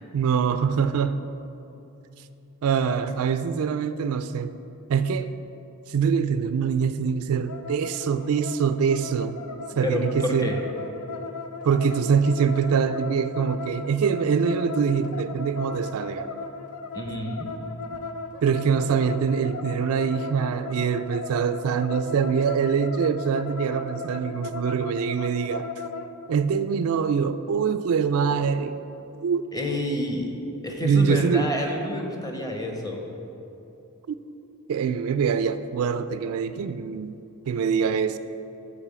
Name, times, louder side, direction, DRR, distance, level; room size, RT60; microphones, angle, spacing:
voice 1, 0.1-1.3 2.6-4.5 4.9-5.3 5.9-9.3 9.7-10.5 11.6-16.3 18.4-25.7 26.3-28.8 29.2-29.4 30.8-31.5 34.7-37.2 37.5-38.2, right 6 dB, 75° right, 12 dB, 0.3 m, -24 dB
sound 1, 7.5-26.1, left 4 dB, 80° left, 0.6 m, -37 dB
voice 2, 9.8-10.6 16.9-17.5 29.5-30.3 30.6-33.0, left 1 dB, 15° left, 2 dB, 0.8 m, -28 dB
8.8 x 4.3 x 7.4 m, 2.9 s
head